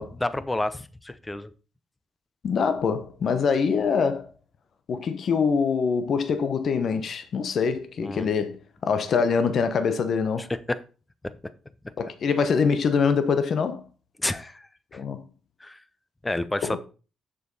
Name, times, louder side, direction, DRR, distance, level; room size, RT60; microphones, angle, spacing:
voice 1, 0.2-1.5 8.0-8.3 10.4-10.8 11.2-11.4 14.2-14.7 14.9-15.0 15.6-15.8 16.2-16.8, left 2 dB, 15° left, 0.7 m, -29 dB
voice 2, 2.4-4.3 4.9-10.5 12.0-13.8 14.9-15.2 16.6-16.8, left 5 dB, 55° left, 1.0 m, -24 dB
6.8 x 6.8 x 4.1 m
cardioid pair, 90°, 0 cm